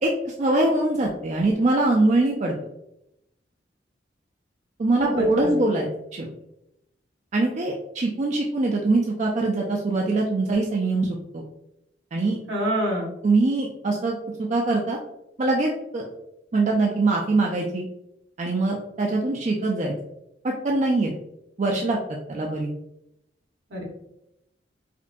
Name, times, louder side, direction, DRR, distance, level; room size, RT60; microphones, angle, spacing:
voice 1, 0.0-2.5 4.8-6.3 7.3-11.4 12.1-12.4 13.2-14.2 14.5-15.0 15.4-16.1 16.5-17.9 18.4-19.9 20.4-21.1 21.6-22.7, right 2 dB, 40° right, -1 dB, 0.4 m, -23 dB
voice 2, 5.0-5.6 12.5-13.1 23.7-23.8, equal, 75° right, -1 dB, 1.2 m, -27 dB
5.1 x 2.2 x 2.6 m, 0.83 s
head